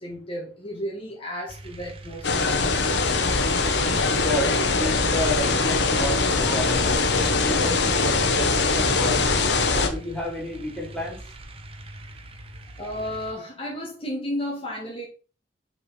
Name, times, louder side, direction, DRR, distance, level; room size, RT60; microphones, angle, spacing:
voice 1, 0.0-2.7 12.8-15.1, equal, 30° left, -3 dB, 1.7 m, -33 dB
sound 1, 1.5-13.3, right 1 dB, 35° right, 0.9 m, -42 dB
sound 2, 2.2-9.9, left 3 dB, 75° left, 1.0 m, -22 dB
voice 2, 4.1-9.3 9.7-11.2, left 1 dB, 5° left, -4 dB, 2.8 m, -31 dB
5.7 x 5.0 x 4.2 m, 0.34 s
head